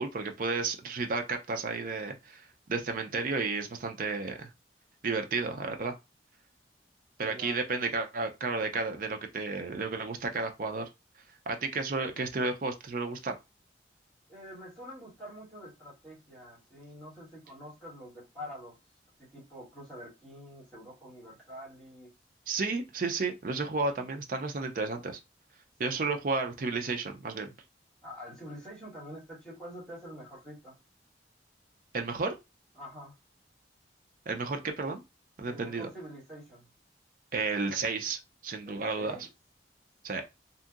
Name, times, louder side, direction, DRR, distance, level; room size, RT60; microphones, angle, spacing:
voice 1, 0.0-4.5 5.0-5.9 7.2-10.9 11.5-13.3 22.5-25.2 25.8-27.5 31.9-32.3 34.3-35.0 35.4-35.9 37.3-39.2 40.0-40.3, right 3 dB, 50° right, 0.5 m, -32 dB
voice 2, 7.2-7.6 14.3-18.8 19.2-22.1 25.9-26.0 28.0-30.7 32.7-33.1 35.4-36.7 38.6-39.3, equal, 5° left, 1.5 m, -46 dB
2.7 x 2.6 x 2.4 m
head